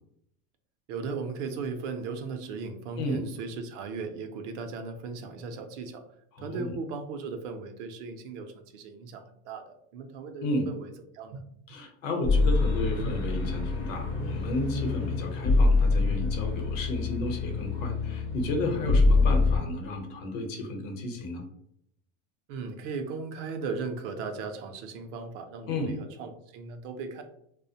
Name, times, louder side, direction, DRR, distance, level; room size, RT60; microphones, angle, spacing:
voice 1, 0.9-6.0 6.4-11.4 22.5-27.2, right 4 dB, 60° right, 7 dB, 0.5 m, -37 dB
voice 2, 6.3-6.7 10.4-10.7 11.7-21.4 25.7-26.0, left 1 dB, 70° left, 4 dB, 0.8 m, -33 dB
sound 1, 12.2-19.6, left 3 dB, 35° left, 0.6 m, -25 dB
2.4 x 2.1 x 2.7 m, 0.74 s
supercardioid pair, 130°, 40 cm